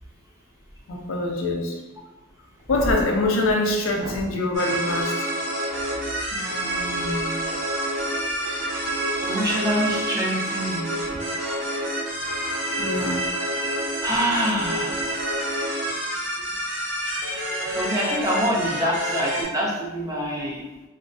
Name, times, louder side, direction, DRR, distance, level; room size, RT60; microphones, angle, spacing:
voice 1, 0.9-1.8 2.7-5.2 8.4-8.6 12.8-13.2, left 2 dB, 75° left, 1 dB, 0.4 m, -24 dB
sound 1, 2.6-4.3 5.7-5.8 7.5-7.6 9.5-9.6 11.0-11.2, equal, 45° right, 0.9 m, -34 dB
sound 2, 4.5-19.4, right 1 dB, 65° right, 1.2 m, -28 dB
voice 2, 6.3-7.4 9.2-11.2 14.0-15.2 17.6-20.7, equal, 15° right, -4 dB, 0.5 m, -26 dB
2.4 x 2.2 x 2.3 m, 1.0 s
head